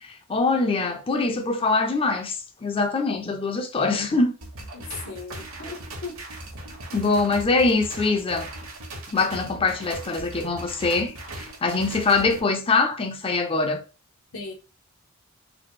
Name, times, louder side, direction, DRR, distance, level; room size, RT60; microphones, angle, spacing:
voice 1, 0.0-4.3 6.9-8.5 9.1-13.8, left 3 dB, 25° left, 0.4 m, -23 dB
sound 1, 4.4-12.4, right 1 dB, 75° right, 1.2 m, -39 dB
voice 2, 4.7-6.2 14.3-14.5, left 4 dB, 85° left, 1.1 m, -37 dB
4.0 x 2.3 x 3.1 m
head